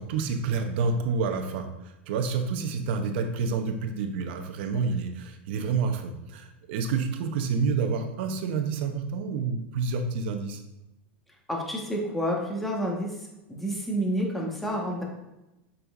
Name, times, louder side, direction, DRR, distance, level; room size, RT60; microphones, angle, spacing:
voice 1, 0.0-10.6, right 5 dB, 65° right, 6 dB, 0.8 m, -29 dB
voice 2, 11.5-13.1 13.5-15.0, equal, 5° left, -1 dB, 1.4 m, -29 dB
6.7 x 5.6 x 2.6 m, 0.93 s
hypercardioid pair, 105°, 6 cm